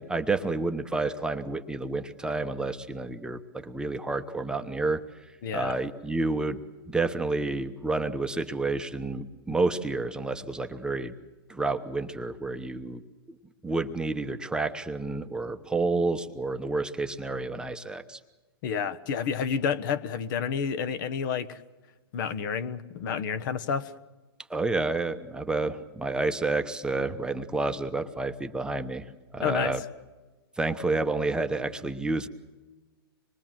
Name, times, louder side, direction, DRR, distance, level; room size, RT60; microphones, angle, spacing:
voice 1, 0.0-5.0 5.5-6.6 6.9-11.1 11.5-13.0 13.6-18.2 24.5-29.1 29.3-29.8 30.6-32.3, right 3 dB, 5° right, 6 dB, 1.0 m, -29 dB
voice 2, 5.4-5.8 18.6-21.6 22.1-23.9 29.4-29.7, left 7 dB, 50° left, 14 dB, 1.3 m, -30 dB
25.5 x 22.0 x 7.6 m, 1.2 s
hypercardioid pair, 135°, 13 cm